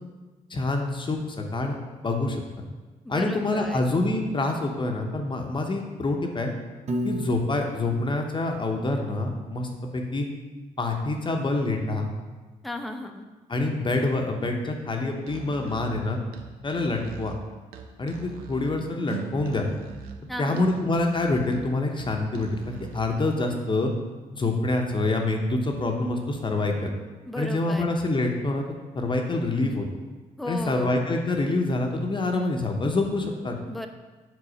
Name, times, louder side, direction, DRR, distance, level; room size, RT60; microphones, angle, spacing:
voice 1, 0.5-1.7 2.0-2.4 3.1-6.5 7.0-10.3 10.8-12.1 13.5-16.2 16.6-17.3 18.0-19.7 20.4-23.9 24.3-26.9 27.4-28.6 28.9-29.8 30.5-33.5, left 2 dB, 35° left, 2 dB, 0.8 m, -26 dB
voice 2, 3.0-3.8 12.6-13.3 20.3-20.7 27.3-28.0 30.4-31.0 33.7-33.9, left 1 dB, ahead, 4 dB, 0.5 m, -35 dB
Piano, 6.9-9.1, right 1 dB, 45° right, 0.7 m, -34 dB
Musical instrument, 15.2-23.2, right 5 dB, 90° right, 0.5 m, -42 dB
4.9 x 3.9 x 5.0 m, 1.3 s
supercardioid pair, 65°, 15 cm